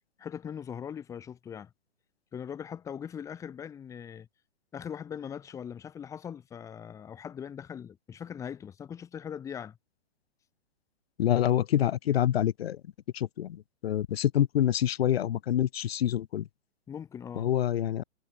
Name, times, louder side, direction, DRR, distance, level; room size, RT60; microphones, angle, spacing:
voice 1, 0.2-1.7 2.3-4.3 4.7-9.8 16.9-17.5, left 8 dB, 10° left, 1.4 m, -40 dB
voice 2, 11.2-12.8 13.1-16.5 17.4-18.0, left 11 dB, 55° left, 1.4 m, -26 dB
hypercardioid pair, 165°, 35 cm